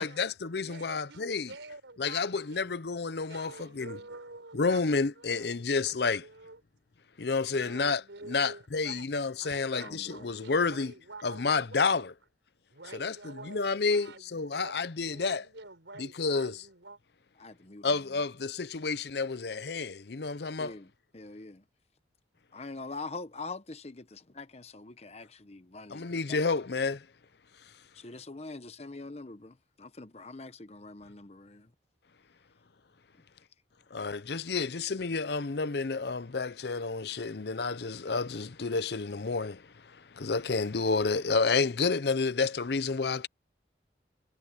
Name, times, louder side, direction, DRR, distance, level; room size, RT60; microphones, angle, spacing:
voice 1, 0.0-1.5 2.0-4.0 4.5-6.2 7.2-8.0 8.3-10.9 11.2-12.1 12.9-15.4 16.0-16.6 17.8-20.7 25.9-27.1 33.9-43.3, left 4 dB, 60° left, 0.6 m, -30 dB
voice 2, 0.6-2.8 3.3-6.6 7.5-9.1 9.4-12.1 12.7-17.0, right 3 dB, 85° right, 4.5 m, -48 dB
voice 3, 9.7-10.2 17.4-17.9 20.6-20.9 21.1-21.6 22.5-26.4 27.9-31.7, left 3 dB, 35° left, 0.9 m, -44 dB
head